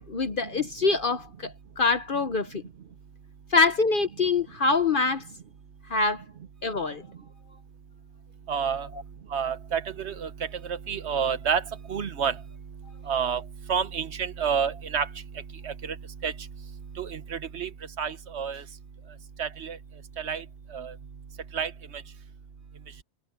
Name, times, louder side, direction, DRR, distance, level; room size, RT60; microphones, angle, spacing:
voice 1, 0.1-2.6 3.5-5.3 5.9-6.2 6.6-7.0 8.9-9.0, left 4 dB, 45° left, 0.9 m, -25 dB
voice 2, 8.5-8.9 9.3-10.3 10.6-11.6 11.9-12.4 13.1-13.4 13.7-15.1 15.6-15.9 16.2-16.3 17.0-17.7 18.0-18.6 19.4-19.8 20.2-20.4 20.7-20.9 21.5-21.7, right 7 dB, 60° right, 1.2 m, -29 dB
omnidirectional pair, 1.4 m